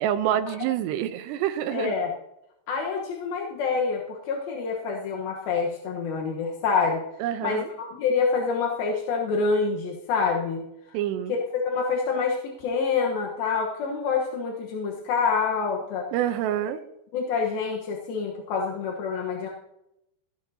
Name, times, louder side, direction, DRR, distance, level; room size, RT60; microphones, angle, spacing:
voice 1, 0.0-1.9 7.2-7.7 10.9-11.3 16.1-16.8, right 11 dB, 80° right, 9 dB, 2.5 m, -27 dB
voice 2, 1.7-2.1 2.7-7.0 7.4-11.0 11.3-16.1 17.1-19.5, left 5 dB, 70° left, -1 dB, 2.4 m, -27 dB
16.0 x 13.5 x 2.7 m, 0.83 s
omnidirectional pair, 5.6 m